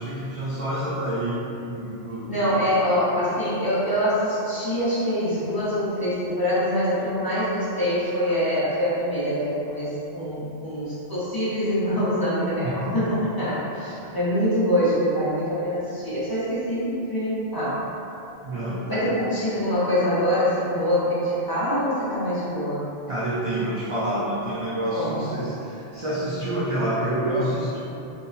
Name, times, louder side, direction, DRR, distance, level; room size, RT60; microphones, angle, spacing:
voice 1, 0.0-2.6 12.9-13.0 18.4-19.3 23.1-27.8, right 1 dB, 55° right, -8 dB, 0.3 m, -28 dB
voice 2, 2.3-17.8 18.9-22.8 24.9-25.4, equal, 25° left, -11 dB, 0.8 m, -24 dB
3.8 x 2.6 x 2.6 m, 2.9 s
omnidirectional pair, 1.1 m